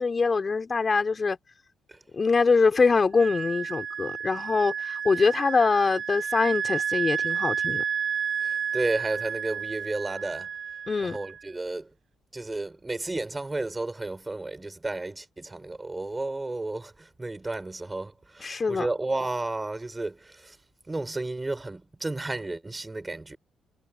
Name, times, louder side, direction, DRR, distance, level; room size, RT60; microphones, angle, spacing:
voice 1, 0.0-1.4 2.1-7.8 10.9-11.2 18.4-18.9, left 4 dB, 35° left, 4.8 m, -24 dB
Wind instrument woodwind instrument, 3.1-11.4, right 7 dB, 55° right, 6.2 m, -31 dB
voice 2, 8.4-10.5 11.0-11.9 12.3-20.6 20.9-23.4, right 2 dB, 15° right, 4.9 m, -32 dB
cardioid pair, 90°, 0 cm